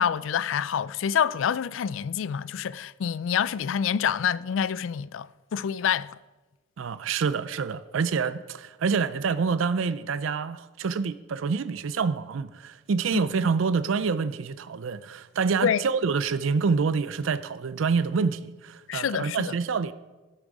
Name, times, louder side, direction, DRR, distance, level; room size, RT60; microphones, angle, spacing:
voice 1, 0.0-6.2 13.1-13.2 15.6-15.8 18.9-19.5, left 8 dB, 80° left, 0.3 m, -27 dB
voice 2, 6.8-19.9, right 5 dB, 80° right, 0.4 m, -27 dB
12.5 x 8.9 x 4.9 m
head